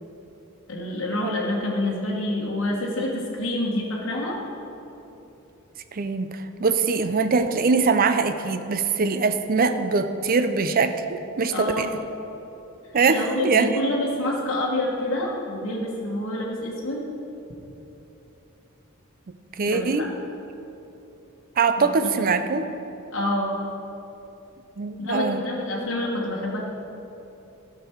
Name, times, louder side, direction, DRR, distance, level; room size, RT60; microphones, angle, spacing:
voice 1, 0.7-4.4 11.5-11.9 13.1-17.0 19.6-20.1 21.8-22.3 23.1-23.5 25.0-26.6, left 1 dB, 65° left, -4 dB, 1.3 m, -27 dB
voice 2, 5.9-11.9 12.9-14.0 19.3-20.1 21.6-22.7 24.8-25.4, right 4 dB, 45° right, 10 dB, 0.5 m, -23 dB
12.5 x 6.0 x 4.5 m, 3.0 s
head